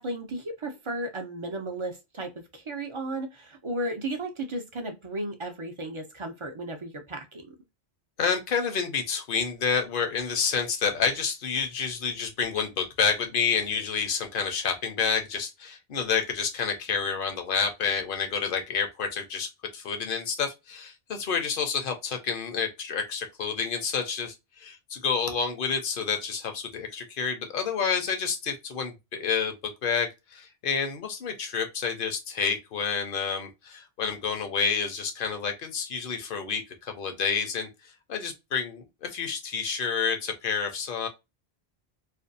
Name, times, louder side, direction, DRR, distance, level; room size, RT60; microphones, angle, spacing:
voice 1, 0.0-7.5, right 1 dB, 45° right, 0.4 m, -34 dB
voice 2, 8.2-29.5 29.8-37.7 38.1-41.1, left 6 dB, 60° left, 0.7 m, -29 dB
2.5 x 2.2 x 2.5 m
omnidirectional pair, 1.1 m